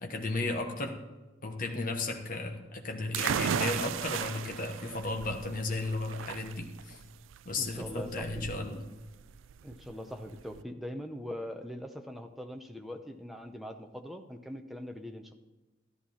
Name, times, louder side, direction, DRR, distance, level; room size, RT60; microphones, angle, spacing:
voice 1, 0.0-1.0 1.4-7.0 7.4-8.8, left 2 dB, 45° left, 3 dB, 1.2 m, -34 dB
sound 1, 3.1-10.6, right 8 dB, 85° right, 0.4 m, -36 dB
voice 2, 7.6-8.5 9.6-15.3, equal, ahead, 4 dB, 0.8 m, -42 dB
13.0 x 11.0 x 4.3 m, 1.1 s
head